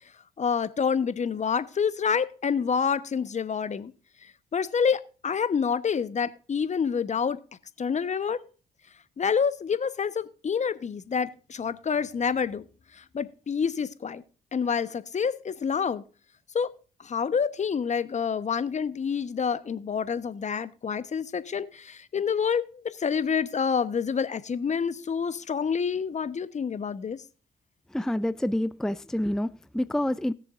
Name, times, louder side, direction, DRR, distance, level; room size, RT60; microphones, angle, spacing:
voice 1, 0.4-3.9 4.5-7.4 7.8-8.4 9.2-12.7 13.0-14.2 14.5-16.0 16.5-16.7 17.0-27.2, left 6 dB, 40° left, 1.0 m, -27 dB
voice 2, 27.9-30.3, left 1 dB, 5° left, 0.6 m, -28 dB
20.0 x 6.9 x 2.6 m
hypercardioid pair, 50°, 18 cm